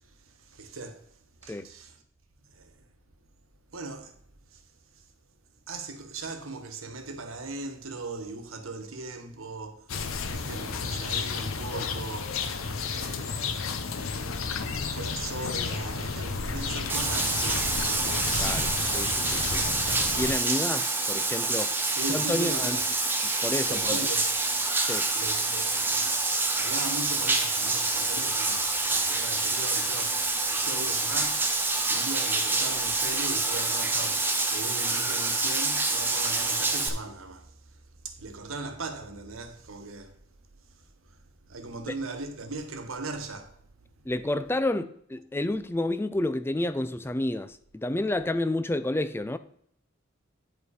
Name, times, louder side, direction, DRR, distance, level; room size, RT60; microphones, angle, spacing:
voice 1, 0.3-1.0 1.4-1.9 2.5-2.7 3.7-4.2 4.5-4.6 5.7-9.8 10.3-12.4 12.9-13.6 14.9-17.7 20.5-20.6 21.9-22.8 23.7-24.3 25.1-26.1 26.5-37.5 38.0-40.1 41.5-43.6, right 3 dB, 85° right, 1.2 m, -38 dB
sound 1, 9.9-20.3, left 4 dB, 85° left, 0.9 m, -32 dB
Bathtub (filling or washing), 16.9-36.9, right 3 dB, 10° right, 0.8 m, -27 dB
voice 2, 18.4-19.7 20.1-21.7 22.1-22.8 23.2-24.1 24.8-25.1 44.1-49.4, left 1 dB, 10° left, 0.3 m, -30 dB
9.5 x 5.1 x 4.8 m
head